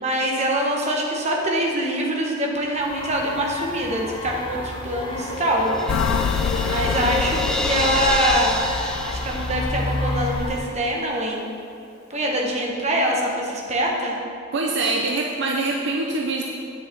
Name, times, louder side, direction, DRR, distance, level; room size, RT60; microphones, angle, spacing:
voice 1, 0.0-5.7 6.6-8.6 9.0-11.4 12.1-14.2, right 1 dB, 35° right, -1 dB, 1.2 m, -24 dB
sound 1, 2.8-10.7, left 1 dB, 25° left, 0.8 m, -31 dB
Crash cymbal, 4.4-10.1, left 1 dB, 5° left, 0.6 m, -29 dB
sound 2, 5.9-10.4, left 7 dB, 85° left, 0.3 m, -28 dB
voice 2, 14.5-16.4, right 3 dB, 60° right, 1 dB, 0.6 m, -24 dB
8.5 x 6.3 x 4.6 m, 2.5 s
head